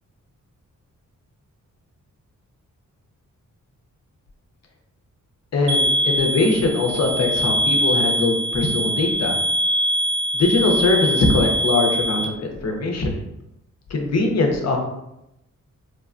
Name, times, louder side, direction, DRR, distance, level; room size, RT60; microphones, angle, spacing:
voice 1, 5.5-9.4 10.3-13.2 13.9-14.8, left 3 dB, 55° left, 2 dB, 0.6 m, -21 dB
sound 1, 5.7-12.2, right 1 dB, 70° right, 0.5 m, -22 dB
3.3 x 2.1 x 2.4 m, 0.87 s
wide cardioid pair, 95°, 32 cm